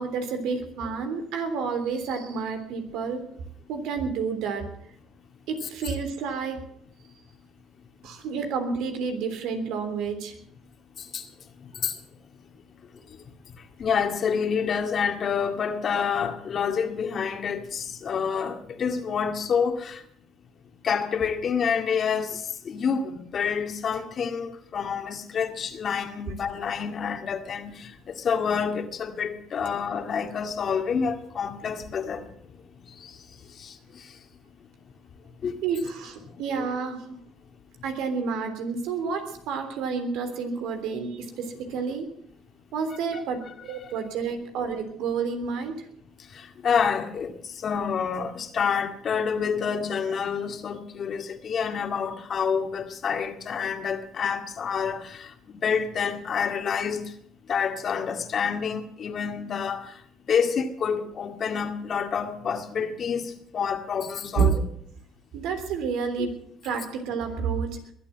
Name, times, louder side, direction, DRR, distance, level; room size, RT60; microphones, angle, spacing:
voice 1, 0.0-3.2 3.7-4.7 5.5-6.6 8.0-10.3 35.6-37.2 37.8-42.1 42.7-45.8 64.4-64.5 65.3-66.3 66.6-67.7, right 5 dB, 75° right, 3.3 m, -30 dB
voice 2, 13.8-20.0 20.8-32.2 33.0-33.1 33.6-34.0 35.4-35.6 36.6-36.7 43.1-43.2 46.3-47.3 47.6-57.1 57.5-59.9 60.3-64.5 66.2-66.3, left 6 dB, 50° left, 2.1 m, -28 dB
22.0 x 8.6 x 7.5 m
supercardioid pair, 80°, 0 cm